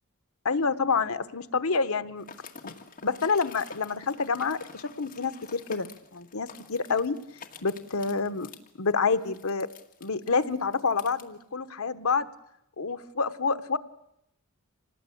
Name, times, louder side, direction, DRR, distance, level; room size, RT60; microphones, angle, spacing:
voice 1, 0.4-2.2 2.6-2.7 3.0-7.2 7.6-8.5 8.8-9.7 10.0-12.3 12.8-13.8, left 4 dB, 70° left, 11 dB, 1.1 m, -28 dB
Bridge Collapse, 2.2-11.2, left 5 dB, 40° left, 1.9 m, -48 dB
26.5 x 19.0 x 8.5 m, 0.80 s
head